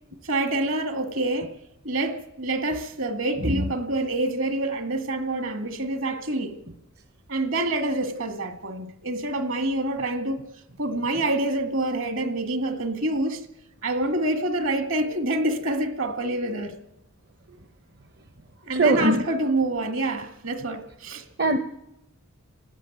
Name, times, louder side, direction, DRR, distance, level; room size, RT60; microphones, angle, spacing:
voice 1, 0.2-1.5 1.8-6.6 7.3-10.4 10.8-13.4 13.8-16.8 18.6-21.2, right 2 dB, 60° right, 2.0 m, -27 dB
voice 2, 18.7-19.2 21.4-21.6, right 2 dB, 45° right, 0.9 m, -20 dB
29.5 x 13.0 x 9.2 m
head